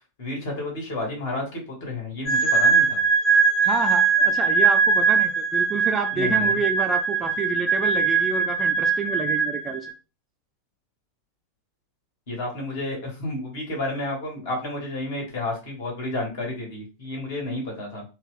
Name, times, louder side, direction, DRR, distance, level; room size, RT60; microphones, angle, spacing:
voice 1, 0.2-3.0 6.1-6.5 12.3-18.0, left 2 dB, 50° left, 0 dB, 1.8 m, -31 dB
sound 1, 2.3-9.9, right 5 dB, 35° left, 1.2 m, -21 dB
voice 2, 3.6-9.9, right 5 dB, 25° right, 6 dB, 0.5 m, -29 dB
4.0 x 2.4 x 3.3 m, 0.32 s
figure-of-eight pair, 90°, 0 cm